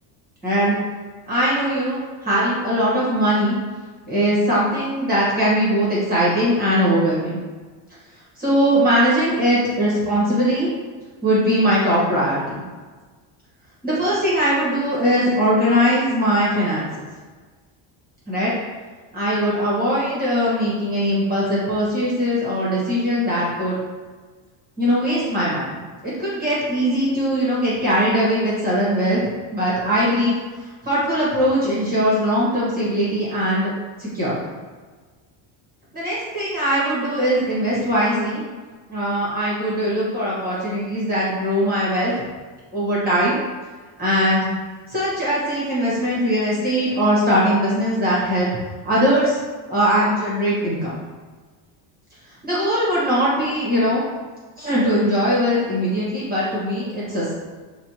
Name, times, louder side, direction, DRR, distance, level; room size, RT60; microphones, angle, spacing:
voice 1, 0.4-0.8 1.3-3.5 4.1-7.4 8.4-10.7 11.2-12.6 13.8-16.9 18.3-18.5 19.1-23.8 24.8-25.8 26.0-29.2 29.5-30.3 30.8-33.7 34.0-34.4 35.9-38.4 38.9-42.1 42.7-43.4 44.0-44.5 44.9-48.5 48.8-49.4 49.7-51.0 52.4-54.0 54.6-57.3, equal, 20° right, -8 dB, 1.5 m, -20 dB
4.8 x 2.5 x 3.0 m, 1.4 s
cardioid pair, 125°, 49 cm